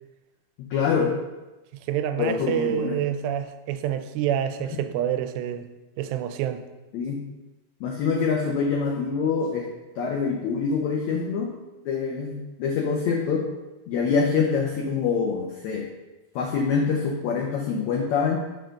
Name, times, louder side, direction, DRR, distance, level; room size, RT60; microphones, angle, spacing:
voice 1, 0.7-1.1 2.2-3.0 6.9-7.2 7.8-9.7 10.0-11.5 11.9-13.4 13.9-15.9 16.4-18.4, left 5 dB, 85° left, -1 dB, 1.6 m, -25 dB
voice 2, 1.9-5.7 6.0-6.6, right 10 dB, 85° right, 9 dB, 2.4 m, -27 dB
6.3 x 3.9 x 6.4 m, 1.1 s
omnidirectional pair, 4.3 m